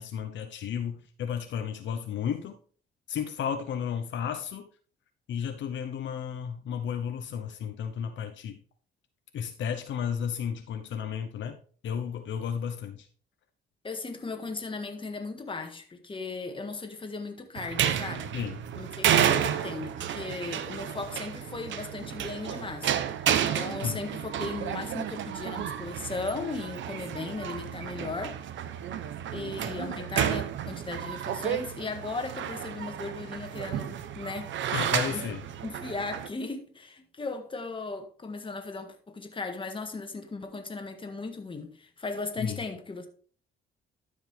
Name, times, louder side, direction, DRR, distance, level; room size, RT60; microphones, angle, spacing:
voice 1, 0.0-2.6 3.1-4.7 5.3-8.6 9.3-11.6 11.8-13.1 18.3-18.6 23.8-24.0 34.7-35.4 42.4-42.6, left 8 dB, 70° left, 0.9 m, -33 dB
voice 2, 13.8-18.3 18.7-22.9 23.5-28.4 29.3-34.5 35.1-35.2 35.6-43.1, left 3 dB, 25° left, 1.6 m, -37 dB
sound 1, 17.6-36.3, right 9 dB, 70° right, 0.8 m, -31 dB
12.5 x 5.3 x 3.4 m
cardioid pair, 90°, 20 cm